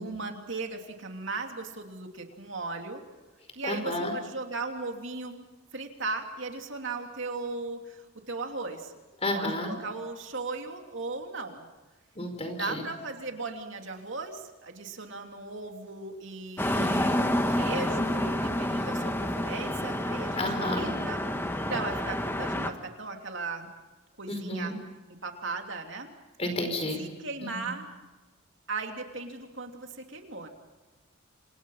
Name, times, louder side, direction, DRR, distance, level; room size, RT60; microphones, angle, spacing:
voice 1, 0.0-3.0 3.5-5.5 5.7-8.9 9.3-11.7 12.5-17.1 17.5-21.2 21.7-23.7 24.2-24.8 25.2-26.1 27.0-27.9 28.7-30.5, right 3 dB, 60° right, 3 dB, 3.0 m, -37 dB
voice 2, 3.6-4.1 9.2-9.7 12.1-12.8 16.7-17.2 20.3-20.9 24.3-24.7 26.4-27.0 27.4-27.5, left 1 dB, 30° left, 6 dB, 4.9 m, -31 dB
sound 1, 16.6-22.7, left 1 dB, 10° left, 1.5 m, -29 dB
28.0 x 27.5 x 5.7 m, 1.2 s
head